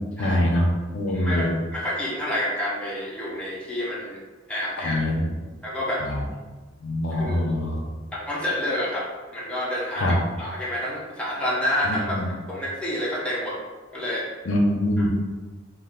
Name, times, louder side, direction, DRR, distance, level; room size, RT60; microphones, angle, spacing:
voice 1, 0.2-0.7 0.9-1.5 4.8-5.3 6.0-6.3 6.8-7.8 10.0-10.2 11.8-12.3 14.5-15.1, left 1 dB, 70° left, 0 dB, 0.5 m, -24 dB
voice 2, 1.1-4.2 4.5-5.0 5.6-6.0 7.1-7.7 8.1-13.6 13.9-14.3 15.0-15.1, equal, 5° left, -7 dB, 0.6 m, -29 dB
2.4 x 2.2 x 3.5 m, 1.3 s
head